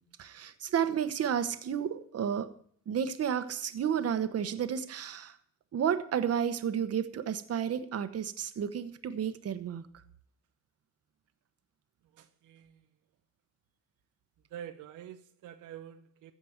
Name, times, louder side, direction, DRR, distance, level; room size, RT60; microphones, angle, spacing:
voice 1, 0.2-2.5 2.9-5.4 5.7-9.8, right 8 dB, 55° right, 1.1 m, -31 dB
voice 2, 12.1-12.8 14.5-16.3, right 10 dB, 80° right, 0.8 m, -47 dB
15.5 x 5.2 x 8.0 m
cardioid pair, 90°, 30 cm